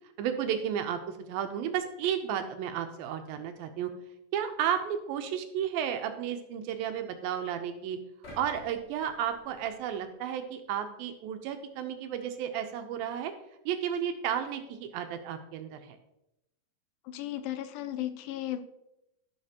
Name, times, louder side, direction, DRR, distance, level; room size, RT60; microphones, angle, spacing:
voice 1, 0.2-3.9 4.3-8.0 8.3-13.3 13.7-16.0, right 9 dB, 80° right, 7 dB, 2.3 m, -33 dB
sound 1, 8.2-10.4 10.9-11.0, equal, 55° left, 3.3 m, -52 dB
voice 2, 17.1-18.7, left 12 dB, 80° left, 9 dB, 2.1 m, -35 dB
14.5 x 6.6 x 2.9 m, 0.87 s
omnidirectional pair, 4.5 m